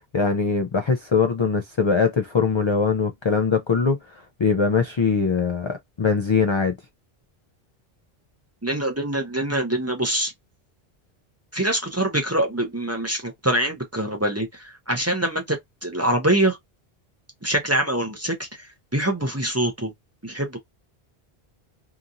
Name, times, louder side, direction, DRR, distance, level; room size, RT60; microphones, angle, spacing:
voice 1, 0.1-6.8, left 5 dB, 50° left, 0.3 m, -22 dB
voice 2, 8.6-10.3 11.5-16.6 17.4-18.5 18.9-19.9 20.2-20.6, right 1 dB, 15° right, 0.6 m, -24 dB
2.9 x 2.5 x 2.5 m
omnidirectional pair, 1.0 m